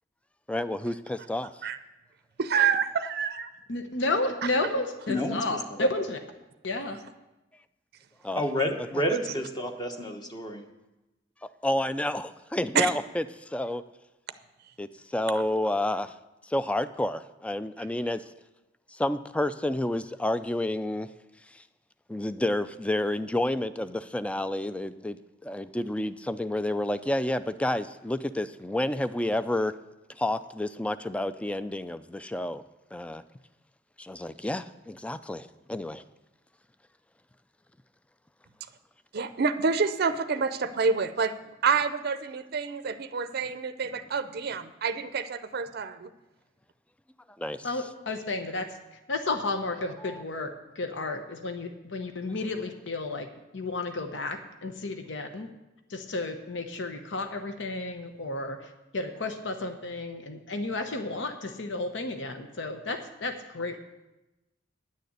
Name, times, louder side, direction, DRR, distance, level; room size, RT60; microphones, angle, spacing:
voice 1, 0.5-1.5 8.2-8.4 11.6-13.8 14.8-16.1 16.4-18.2 18.9-21.1 21.5-21.6 22.1-29.7 30.2-32.6 32.9-33.2 34.0-36.0 47.4-47.7 50.0-50.2, left 1 dB, 5° left, 13 dB, 0.3 m, -30 dB
voice 2, 2.4-3.3 12.8-12.9 39.1-41.3 41.6-46.1, right 5 dB, 55° right, 11 dB, 0.5 m, -27 dB
voice 3, 3.7-6.2 6.6-7.0 47.6-48.7 49.1-53.3 53.5-55.5 55.9-63.8, left 2 dB, 70° left, 7 dB, 0.9 m, -32 dB
voice 4, 5.1-5.4 5.7-5.8 8.4-10.6, equal, 20° left, 4 dB, 1.0 m, -29 dB
10.0 x 6.7 x 8.0 m, 1.0 s
head